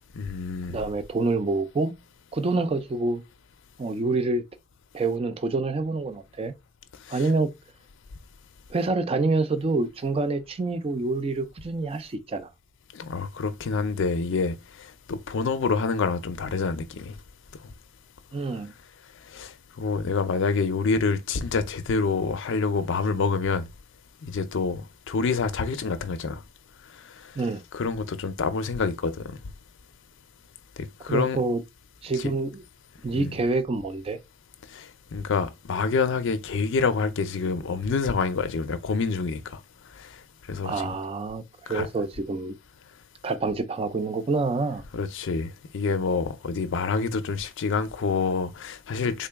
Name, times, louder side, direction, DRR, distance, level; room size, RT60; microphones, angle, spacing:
voice 1, 0.1-0.8 7.1-7.2 12.9-14.6 15.1-17.1 19.3-19.5 19.8-23.6 24.2-26.4 27.2-27.3 27.7-29.4 31.0-31.4 33.1-33.3 34.7-39.6 40.0-40.1 40.5-40.9 41.7-41.9 44.9-49.3, left 4 dB, 60° left, 0.5 m, -27 dB
voice 2, 0.7-1.9 2.3-3.2 3.8-4.4 4.9-6.5 7.1-7.5 8.7-12.5 18.3-18.7 27.4-27.6 31.1-31.6 32.0-32.6 33.0-34.2 40.6-42.6 43.2-44.8, right 3 dB, 25° right, 0.4 m, -27 dB
3.6 x 2.2 x 3.4 m
head